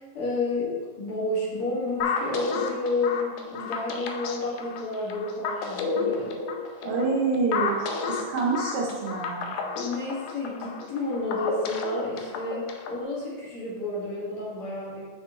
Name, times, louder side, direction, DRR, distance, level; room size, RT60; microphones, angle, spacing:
voice 1, 0.0-6.4 6.8-6.9 9.8-15.0, left 2 dB, 50° left, -6 dB, 2.2 m, -31 dB
sound 1, 2.0-13.0, left 5 dB, 80° left, 2.1 m, -32 dB
voice 2, 6.8-9.6, right 4 dB, 75° right, -3 dB, 1.3 m, -27 dB
7.3 x 5.7 x 3.0 m, 1.4 s
omnidirectional pair, 3.6 m